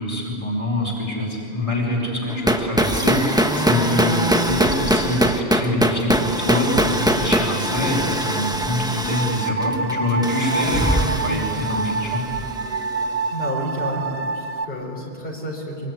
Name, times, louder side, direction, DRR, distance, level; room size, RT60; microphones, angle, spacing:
voice 1, 0.0-12.2, left 1 dB, 30° left, -2 dB, 4.9 m, -25 dB
sound 1, 2.3-13.1, equal, 5° right, 1.2 m, -22 dB
sound 2, 9.1-14.7, right 3 dB, 75° right, 1.1 m, -27 dB
voice 2, 13.3-15.9, equal, 60° left, -2 dB, 5.1 m, -30 dB
24.5 x 24.0 x 9.7 m, 2.5 s
omnidirectional pair, 1.1 m